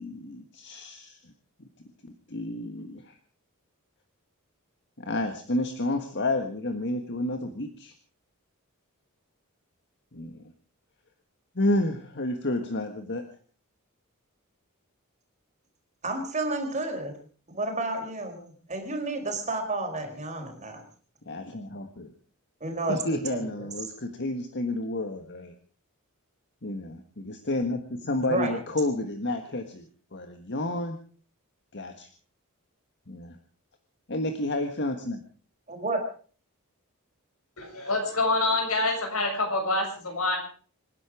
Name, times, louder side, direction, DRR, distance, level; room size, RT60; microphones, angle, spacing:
voice 1, 0.0-1.3 1.6-1.7 2.0-3.2 5.0-7.9 10.1-10.4 11.5-13.3 21.2-22.1 22.9-25.5 26.6-31.0 31.7-32.1 33.1-33.4 34.1-35.2, left 1 dB, 50° left, 6 dB, 1.6 m, -30 dB
voice 2, 16.0-17.1 17.5-20.8 22.6-23.0 23.3-23.7 28.3-28.6 35.7-36.0, right 2 dB, 35° right, 4 dB, 4.4 m, -31 dB
voice 3, 37.6-40.4, left 2 dB, 70° left, 3 dB, 6.9 m, -26 dB
26.5 x 10.5 x 4.9 m, 0.42 s
head